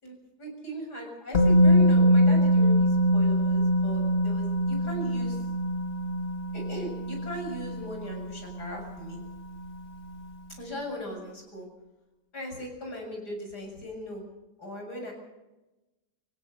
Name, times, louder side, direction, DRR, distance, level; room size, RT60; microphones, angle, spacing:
voice 1, 0.0-5.4 6.5-9.2 10.6-11.7 12.3-14.2 14.6-15.1, equal, 65° left, 1 dB, 7.8 m, -38 dB
Musical instrument, 1.3-9.2 9.5-9.7, equal, 35° left, 2.4 m, -23 dB
26.5 x 16.0 x 8.0 m, 1.0 s
omnidirectional pair, 1.9 m